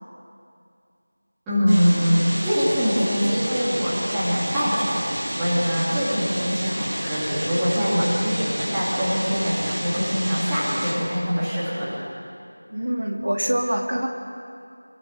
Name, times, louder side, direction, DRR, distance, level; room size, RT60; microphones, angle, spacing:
voice 1, 1.5-12.0, equal, 5° right, -14 dB, 2.8 m, -23 dB
sound 1, 1.7-10.9, equal, 20° right, 5.3 m, -30 dB
voice 2, 12.7-14.1, right 1 dB, 50° right, 2 dB, 2.3 m, -24 dB
28.0 x 23.0 x 7.8 m, 2.4 s
figure-of-eight pair, 175°, 0 cm